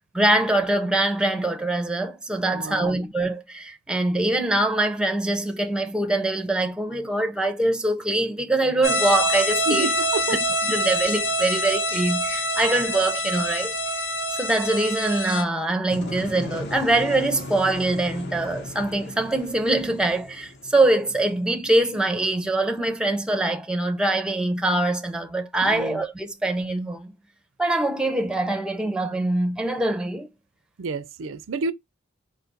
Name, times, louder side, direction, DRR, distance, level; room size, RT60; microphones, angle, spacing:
voice 1, 0.1-9.9 10.7-13.7 14.3-27.1 27.6-30.3, right 2 dB, 5° right, 0.5 m, -23 dB
voice 2, 2.5-3.0 9.7-10.4 25.6-26.0 30.8-31.7, right 3 dB, 70° right, 0.4 m, -29 dB
sound 1, 8.8-15.4, equal, 90° left, 1.2 m, -25 dB
sound 2, 15.9-21.8, left 1 dB, 60° left, 0.8 m, -37 dB
5.0 x 2.3 x 3.9 m
head